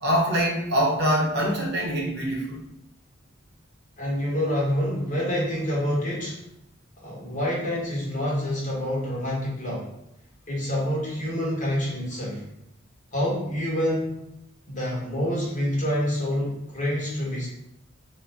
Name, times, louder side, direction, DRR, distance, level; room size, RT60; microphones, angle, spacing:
voice 1, 0.0-2.6, equal, 55° right, -2 dB, 0.6 m, -24 dB
voice 2, 4.0-6.4 7.0-9.9 10.5-12.4 13.1-14.2 14.7-17.5, equal, 40° left, -4 dB, 0.9 m, -27 dB
2.5 x 2.0 x 3.2 m, 0.81 s
head